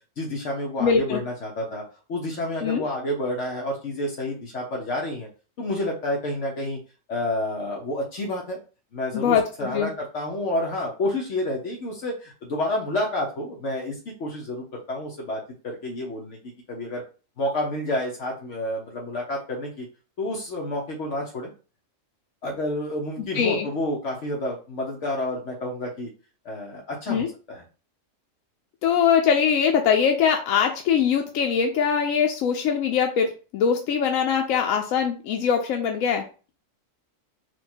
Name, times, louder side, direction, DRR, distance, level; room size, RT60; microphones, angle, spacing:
voice 1, 0.2-1.8 2.1-5.3 5.6-6.8 7.1-8.6 8.9-16.4 16.7-17.0 17.4-19.9 20.2-21.5 22.4-26.1 26.4-27.6, left 1 dB, 65° left, -1 dB, 1.2 m, -29 dB
voice 2, 0.8-1.2 2.6-2.8 9.1-9.9 23.3-23.7 27.1-27.3 28.8-36.3, left 7 dB, 85° left, 3 dB, 1.0 m, -22 dB
4.6 x 2.2 x 4.3 m, 0.35 s
omnidirectional pair, 1.4 m